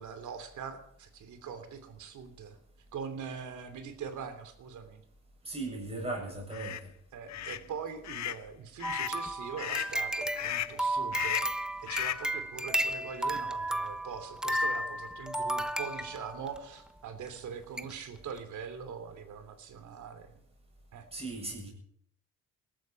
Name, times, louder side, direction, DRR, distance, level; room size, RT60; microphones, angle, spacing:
voice 1, 0.0-2.6 2.9-5.0 7.1-20.4 20.9-21.1, right 6 dB, 75° right, 10 dB, 3.0 m, -42 dB
voice 2, 5.4-6.9 7.3-7.5 21.1-21.7, right 2 dB, 20° right, -1 dB, 7.7 m, -38 dB
sound 1, 6.5-6.8 7.3-7.6 8.0-8.4 8.8-9.2 9.6-9.9 10.4-10.8 11.1-11.6 11.9-12.3, left 12 dB, 65° left, 0.8 m, -35 dB
sound 2, 8.8-16.6 17.3-17.4 17.8-17.9 18.3-18.4, right 1 dB, ahead, 1.1 m, -33 dB
21.0 x 13.5 x 4.7 m, 0.68 s
cardioid pair, 90°, 30 cm